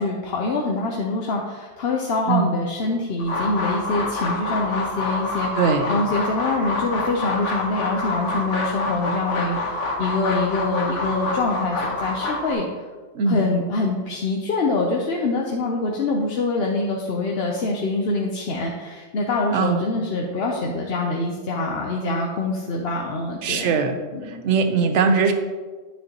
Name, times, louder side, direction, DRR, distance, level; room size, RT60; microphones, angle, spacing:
voice 1, 0.0-12.6 13.3-23.7 24.1-24.8, left 3 dB, 60° left, 0 dB, 0.9 m, -25 dB
sound 1, 3.2-12.5, left 2 dB, 75° left, 1.5 m, -27 dB
voice 2, 5.6-5.9 13.1-13.4 19.5-19.8 23.4-24.0 24.4-25.3, right 5 dB, 80° right, 7 dB, 1.0 m, -20 dB
9.4 x 6.6 x 2.9 m, 1.4 s
omnidirectional pair, 1.2 m